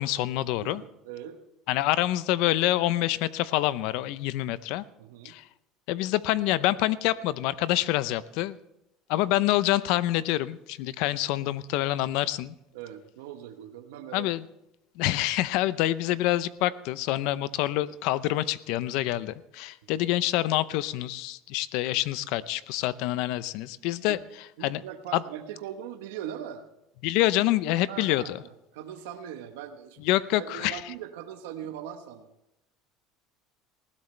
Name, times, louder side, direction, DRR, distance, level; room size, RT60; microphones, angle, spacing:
voice 1, 0.0-0.8 1.7-4.8 5.2-5.4 5.9-8.6 9.1-12.5 14.1-14.4 15.0-24.2 24.6-24.8 25.1-25.2 27.0-28.4 30.0-30.8, left 15 dB, 70° left, 17 dB, 0.6 m, -26 dB
voice 2, 0.6-1.4 5.0-5.3 12.7-14.3 19.9-20.0 24.1-24.2 24.6-26.6 27.9-30.0 30.3-32.3, right 10 dB, 90° right, 6 dB, 1.1 m, -40 dB
19.5 x 16.0 x 3.3 m, 0.86 s
supercardioid pair, 125°, 0 cm